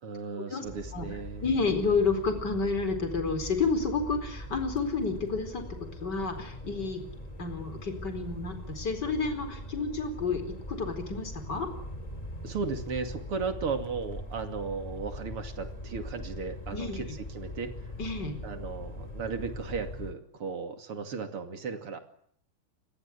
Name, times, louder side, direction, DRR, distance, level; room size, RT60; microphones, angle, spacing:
voice 1, 0.0-1.8 12.4-17.9 18.4-22.0, right 5 dB, 85° right, 7 dB, 3.5 m, -36 dB
sound 1, 0.7-20.1, equal, 15° left, 3.7 m, -41 dB
voice 2, 1.4-5.6 6.0-7.0 7.4-10.4 10.7-11.7 16.7-17.0 18.0-18.4, left 4 dB, 50° left, 7 dB, 4.9 m, -30 dB
29.5 x 22.0 x 8.4 m, 0.66 s
omnidirectional pair, 2.4 m